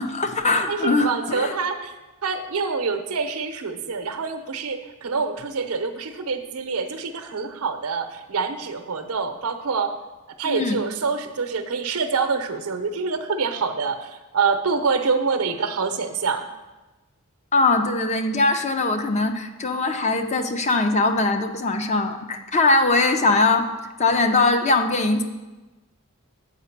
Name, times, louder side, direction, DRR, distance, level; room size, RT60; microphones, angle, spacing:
voice 1, 0.0-1.5 10.4-10.8 17.5-23.7 24.0-25.2, left 3 dB, 30° left, 7 dB, 0.6 m, -21 dB
voice 2, 0.7-1.9 2.2-9.9 10.4-16.5, right 5 dB, 75° right, 8 dB, 0.7 m, -26 dB
7.9 x 4.7 x 5.9 m, 1.1 s
head